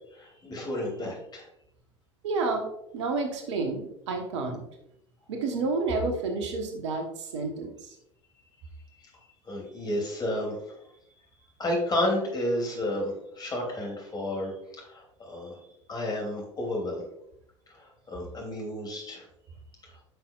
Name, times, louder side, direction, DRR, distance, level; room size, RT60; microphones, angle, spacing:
voice 1, 0.1-1.5 9.0-9.1 9.5-10.8 11.6-15.6 15.9-17.0 17.7-19.3 19.8-19.9, left 1 dB, 25° left, -1 dB, 2.9 m, -31 dB
voice 2, 2.2-2.7 2.9-4.6 5.3-7.9, right 3 dB, 65° right, 4 dB, 1.1 m, -30 dB
10.5 x 5.9 x 2.4 m, 0.78 s
figure-of-eight pair, 65°, 16 cm